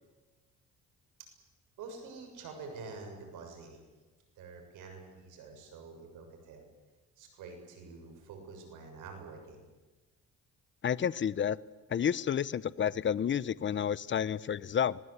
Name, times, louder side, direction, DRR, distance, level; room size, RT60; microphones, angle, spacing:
voice 1, 1.8-3.8 4.4-6.6 7.2-9.6, right 4 dB, 90° right, 4 dB, 6.8 m, -47 dB
voice 2, 10.8-11.6 11.9-15.0, left 8 dB, 40° left, 19 dB, 0.8 m, -30 dB
25.5 x 20.5 x 8.2 m, 1.2 s
cardioid pair, 90°, 30 cm